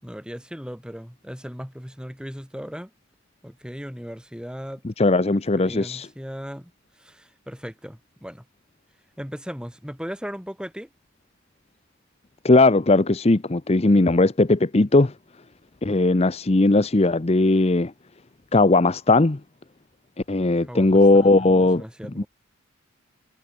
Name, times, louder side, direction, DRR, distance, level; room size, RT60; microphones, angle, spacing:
voice 1, 0.0-2.9 3.4-4.8 5.6-6.7 7.0-8.4 9.2-10.9 20.7-21.5 21.8-22.3, equal, 5° right, 7.4 m, -37 dB
voice 2, 4.8-6.1 12.4-15.1 15.8-17.9 18.5-19.4 20.3-21.8 22.2-22.3, left 2 dB, 30° left, 0.7 m, -18 dB
head